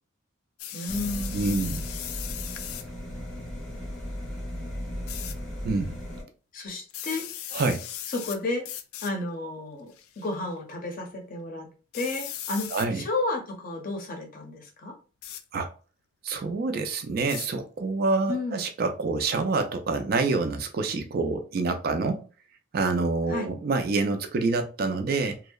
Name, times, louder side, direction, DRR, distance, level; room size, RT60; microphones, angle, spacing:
sound 1, 0.6-2.9 5.1-5.3 6.9-8.4 8.6-9.1 9.9-10.3 11.9-12.9 15.2-15.4 17.3-17.5, left 11 dB, 85° left, 0.3 m, -37 dB
voice 1, 0.7-1.7 3.2-3.8 6.5-7.3 8.1-8.7 9.0-11.7 11.9-14.9 18.3-18.6 23.3-23.5, left 2 dB, 40° left, 0.6 m, -32 dB
sound 2, 0.9-6.2, equal, 5° left, 0.6 m, -36 dB
voice 2, 1.3-1.9 5.6-6.0 7.5-7.8 12.7-13.0 15.5-15.7 16.2-22.2 22.7-25.4, right 3 dB, 45° right, 0.3 m, -27 dB
2.6 x 2.1 x 2.2 m
head